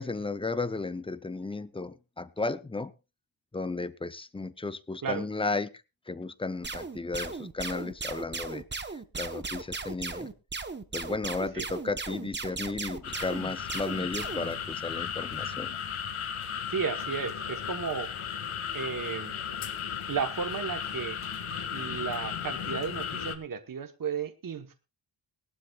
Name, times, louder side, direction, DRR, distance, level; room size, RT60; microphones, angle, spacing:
voice 1, 0.0-2.9 3.5-5.7 6.1-8.6 8.9-10.3 10.9-15.7, left 3 dB, 10° left, 14 dB, 0.5 m, -34 dB
sound 1, 6.6-14.5, right 4 dB, 20° right, 0.9 m, -37 dB
sound 2, 13.0-23.4, left 7 dB, 85° left, 1.7 m, -35 dB
voice 2, 16.7-18.1 18.7-19.4 20.1-21.2 21.7-24.7, right 6 dB, 45° right, 7 dB, 1.1 m, -33 dB
21.0 x 12.0 x 2.3 m, 0.28 s
wide cardioid pair, 175°, 48 cm